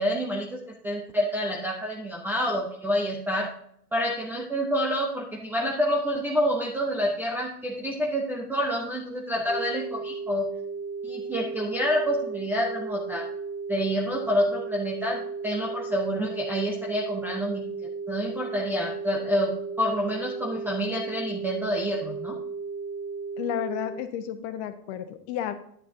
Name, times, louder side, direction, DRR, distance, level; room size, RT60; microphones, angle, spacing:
voice 1, 0.0-3.5 3.9-10.5 11.0-13.3 13.7-17.7 18.1-22.4, equal, 5° right, -1 dB, 0.4 m, -28 dB
sound 1, 9.5-23.9, right 4 dB, 90° right, 3.1 m, -35 dB
voice 2, 23.4-25.5, left 10 dB, 45° left, 9 dB, 1.1 m, -32 dB
10.0 x 8.9 x 2.6 m, 0.68 s
hypercardioid pair, 115°, 47 cm